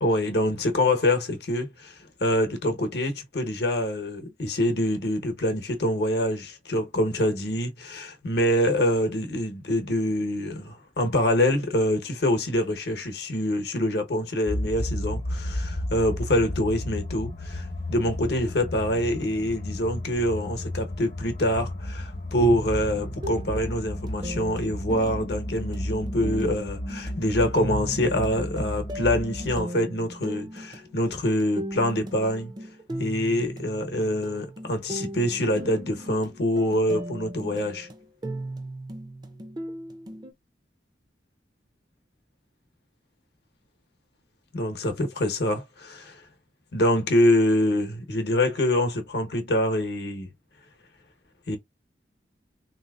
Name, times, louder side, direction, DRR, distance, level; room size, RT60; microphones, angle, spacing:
voice 1, 0.0-32.5 33.0-37.9 44.5-46.2 46.7-50.3 51.5-51.6, left 1 dB, 70° left, 0.9 m, -25 dB
sound 1, 14.5-29.6, left 1 dB, 40° left, 0.7 m, -33 dB
sound 2, 22.4-40.3, right 1 dB, 25° right, 0.5 m, -38 dB
3.5 x 2.8 x 2.3 m
head